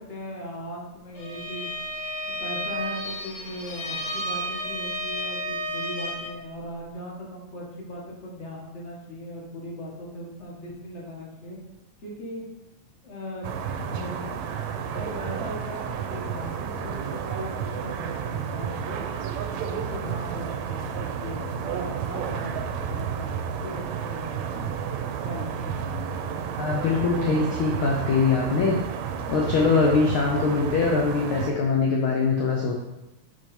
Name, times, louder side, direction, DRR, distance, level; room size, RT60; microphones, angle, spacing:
voice 1, 0.1-1.7 2.4-11.6 12.0-12.4 13.0-13.5 13.8-14.3 14.7-19.1 19.4-22.6 22.9-24.7 25.2-25.7, equal, 30° left, -3 dB, 1.3 m, -38 dB
Bowed string instrument, 1.1-6.4, equal, 50° left, 1.1 m, -32 dB
sound 1, 13.4-31.5, right 7 dB, 75° right, 1.8 m, -31 dB
voice 2, 26.6-28.8 29.3-32.7, left 4 dB, 70° left, -1 dB, 1.2 m, -22 dB
6.2 x 5.1 x 4.4 m, 0.94 s
omnidirectional pair, 3.4 m